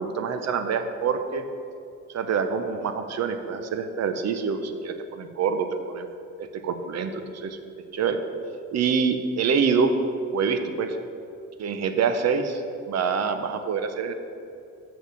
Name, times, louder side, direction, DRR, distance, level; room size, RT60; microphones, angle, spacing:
voice 1, 0.0-1.4 2.1-5.7 5.9-6.0 6.4-7.6 7.9-8.2 8.7-9.9 10.3-11.0 11.6-12.6 12.9-14.1, right 6 dB, 60° right, 8 dB, 0.8 m, -26 dB
6.6 x 6.3 x 7.2 m, 2.5 s
cardioid pair, 90°, 30 cm